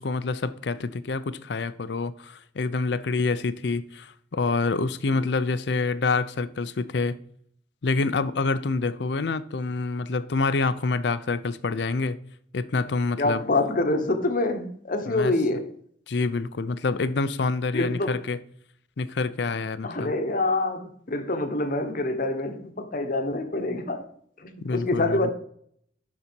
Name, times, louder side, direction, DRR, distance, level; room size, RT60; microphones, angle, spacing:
voice 1, 0.0-7.2 7.8-12.2 12.5-13.4 15.1-15.3 16.1-18.4 19.0-20.1 24.6-25.3, left 3 dB, 65° left, 0.5 m, -27 dB
voice 2, 13.2-15.7 17.7-18.2 19.8-24.1 24.4-25.3, left 2 dB, 50° left, 1.0 m, -26 dB
11.0 x 4.1 x 4.5 m
head